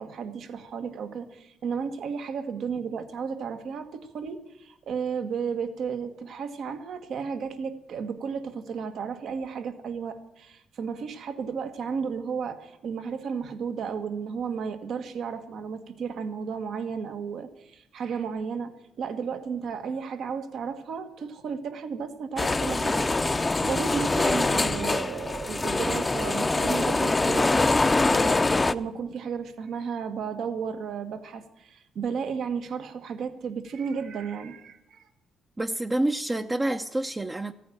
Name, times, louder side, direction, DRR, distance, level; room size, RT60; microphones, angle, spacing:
voice 1, 0.0-35.1, right 6 dB, 70° right, 1.4 m, -33 dB
sound 1, 22.4-28.7, left 2 dB, 20° left, 0.6 m, -24 dB
voice 2, 35.6-37.5, right 1 dB, 20° right, 0.7 m, -28 dB
15.0 x 9.3 x 9.0 m
cardioid pair, 90°, 0 cm